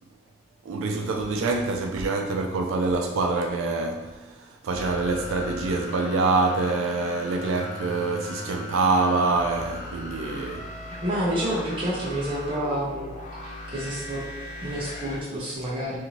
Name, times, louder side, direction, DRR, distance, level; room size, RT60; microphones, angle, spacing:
voice 1, 0.7-4.2 4.6-10.7, right 3 dB, 85° right, 0.3 m, -25 dB
sound 1, 4.7-15.2, left 1 dB, 40° left, 0.4 m, -38 dB
voice 2, 10.9-13.1 13.4-14.2 14.6-16.0, right 1 dB, 25° right, 0.7 m, -29 dB
2.7 x 2.5 x 2.9 m
head